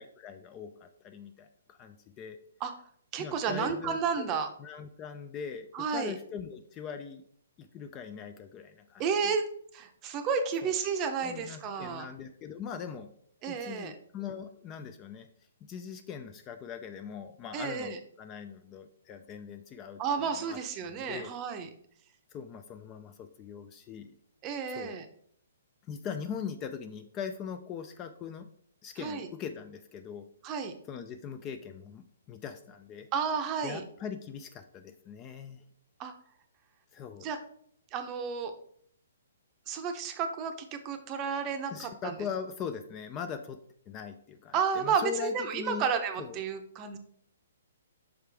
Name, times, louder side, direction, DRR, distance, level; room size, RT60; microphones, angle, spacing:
voice 1, 0.0-2.4 3.2-7.2 7.6-9.0 10.6-10.8 11.2-13.1 13.4-15.3 15.7-20.0 20.4-21.3 22.3-24.2 24.7-25.0 25.9-28.5 28.8-30.3 30.9-33.1 33.6-35.6 36.9-37.3 41.3-43.6 43.9-45.9 46.2-46.4, left 7 dB, 20° left, 8 dB, 0.3 m, -41 dB
voice 2, 3.1-4.5 5.7-6.1 9.0-9.5 9.7-12.1 13.4-13.9 17.5-18.0 20.0-21.7 24.4-25.1 29.0-29.3 30.4-30.8 33.1-33.8 36.0-36.1 37.2-37.4 37.9-38.5 39.7-42.2 44.5-47.0, right 6 dB, 25° right, 7 dB, 0.6 m, -32 dB
5.8 x 4.9 x 3.4 m, 0.64 s
hypercardioid pair, 155°, 0 cm